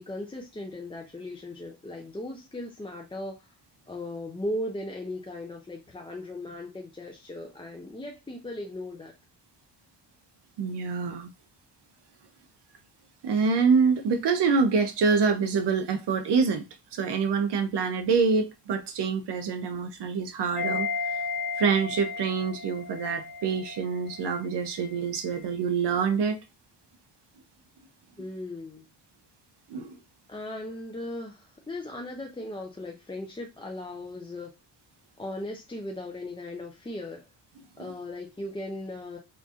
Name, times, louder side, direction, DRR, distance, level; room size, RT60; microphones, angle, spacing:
voice 1, 0.0-3.5 3.9-9.1 28.2-28.9 30.3-34.5 35.2-37.3 37.8-39.2, left 1 dB, 10° left, 0.4 m, -37 dB
voice 2, 10.6-11.3 13.2-16.7 16.9-20.9 21.6-26.4 29.7-29.9 37.8-37.9, right 5 dB, 65° right, 0.6 m, -26 dB
sound 1, 20.6-24.5 24.7-24.8, left 4 dB, 55° left, 1.4 m, -34 dB
3.9 x 2.6 x 2.4 m
cardioid pair, 105°, 44 cm